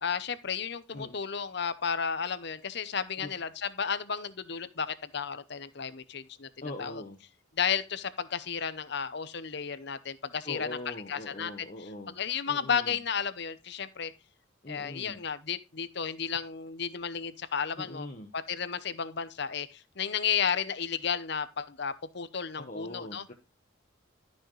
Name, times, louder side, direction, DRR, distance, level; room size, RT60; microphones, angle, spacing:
voice 1, 0.0-6.5 6.8-7.0 7.6-11.7 12.2-14.1 14.7-18.1 18.3-23.2, left 7 dB, 55° left, 0.8 m, -33 dB
voice 2, 6.6-7.2 10.4-12.2 12.5-13.0 14.6-15.2 17.8-18.3 22.6-23.3, left 1 dB, 40° left, 1.2 m, -41 dB
13.0 x 6.4 x 3.2 m
head